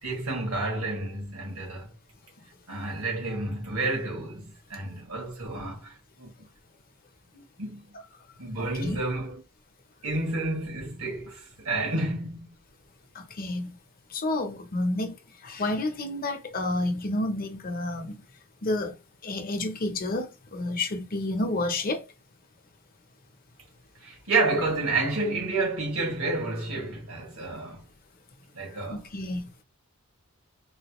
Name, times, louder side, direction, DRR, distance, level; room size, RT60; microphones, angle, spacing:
voice 1, 0.0-1.9 2.7-6.3 7.3-7.8 8.4-9.4 10.0-12.6 24.0-27.9 28.5-29.0, right 2 dB, 90° right, 1.9 m, -30 dB
voice 2, 8.6-9.0 13.1-13.8 14.1-15.2 15.4-18.2 18.6-18.9 19.2-22.1 28.9-29.5, left 2 dB, 40° left, 0.7 m, -30 dB
3.9 x 2.2 x 3.0 m
head